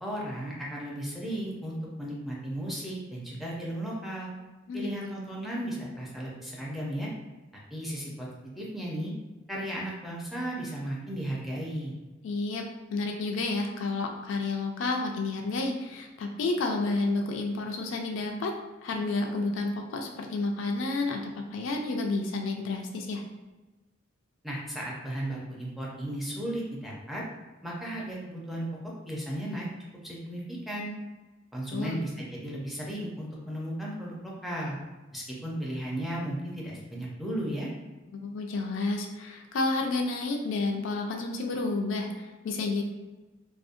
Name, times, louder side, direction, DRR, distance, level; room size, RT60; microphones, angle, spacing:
voice 1, 0.0-4.3 4.7-7.1 7.7-8.3 8.6-9.1 9.5-12.0 24.4-27.2 27.6-28.7 29.1-29.7 30.0-30.9 31.5-34.8 35.1-37.7, right 1 dB, ahead, -5 dB, 0.5 m, -35 dB
voice 2, 12.2-12.6 12.9-18.5 18.8-23.2 31.7-32.0 38.1-42.8, left 3 dB, 70° left, 2 dB, 0.3 m, -30 dB
2.6 x 2.0 x 2.4 m, 1.2 s
head